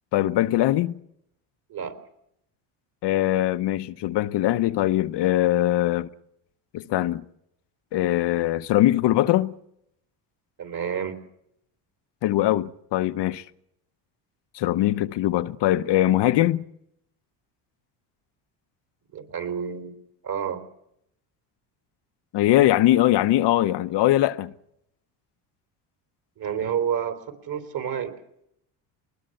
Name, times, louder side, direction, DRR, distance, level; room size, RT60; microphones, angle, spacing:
voice 1, 0.1-1.0 3.0-6.1 6.7-7.2 7.9-9.6 12.2-13.4 14.5-16.6 22.3-24.5, left 14 dB, 55° left, 0.9 m, -21 dB
voice 2, 10.6-11.2 19.1-19.9 20.2-20.6 26.4-28.1, right 8 dB, 45° right, 3.9 m, -29 dB
21.5 x 20.5 x 7.9 m
supercardioid pair, 90°, 49 cm